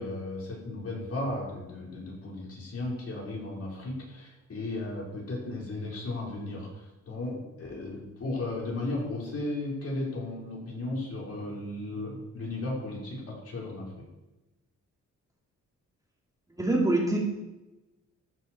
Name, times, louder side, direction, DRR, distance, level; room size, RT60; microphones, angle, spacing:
voice 1, 0.0-14.1, left 2 dB, 50° left, -4 dB, 5.3 m, -35 dB
voice 2, 16.5-17.2, right 2 dB, 10° right, -3 dB, 3.3 m, -25 dB
13.5 x 11.0 x 4.8 m, 1.0 s
cardioid pair, 105°, 30 cm